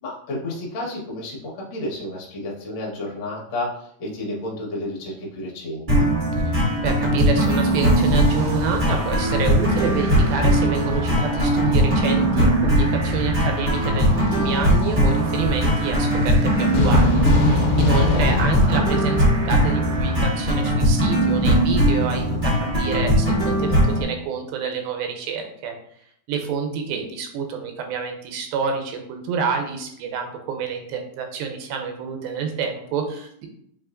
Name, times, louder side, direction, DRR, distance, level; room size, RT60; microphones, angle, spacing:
voice 1, 0.0-6.1 18.1-18.3 26.9-27.0, left 1 dB, 65° left, -4 dB, 1.2 m, -31 dB
sound 1, 5.9-24.0, equal, 35° right, 0.7 m, -20 dB
voice 2, 6.5-25.7 26.3-33.5, right 6 dB, 90° right, 4 dB, 2.6 m, -28 dB
sound 2, 7.4-20.9, equal, 65° right, 2.6 m, -34 dB
sound 3, 16.7-20.2, left 3 dB, 80° left, 2.3 m, -22 dB
7.1 x 2.9 x 2.5 m, 0.68 s
omnidirectional pair, 4.2 m